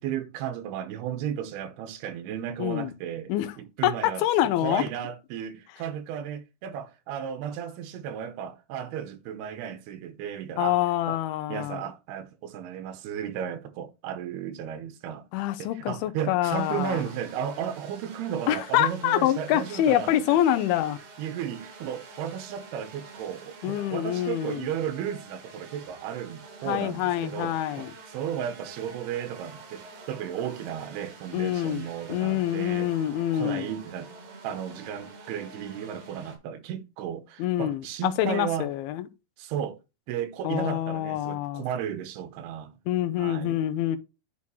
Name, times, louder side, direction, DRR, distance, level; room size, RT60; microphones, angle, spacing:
voice 1, 0.0-3.3 3.6-4.2 4.6-10.8 11.1-11.2 11.5-15.3 15.6-20.6 21.2-32.9 33.3-34.1 34.4-38.7 39.4-39.8 40.1-42.8 43.2-43.6, right 9 dB, 80° right, 2.8 m, -34 dB
voice 2, 2.6-2.9 3.3-3.5 3.8-4.8 10.6-11.8 15.3-17.0 18.5-21.0 23.6-24.7 26.6-27.9 31.3-33.7 37.4-39.1 40.4-41.6 42.9-44.0, left 12 dB, 80° left, 2.5 m, -26 dB
sound 1, 16.5-36.4, right 3 dB, 60° right, 3.5 m, -47 dB
8.9 x 6.0 x 3.0 m
omnidirectional pair, 4.8 m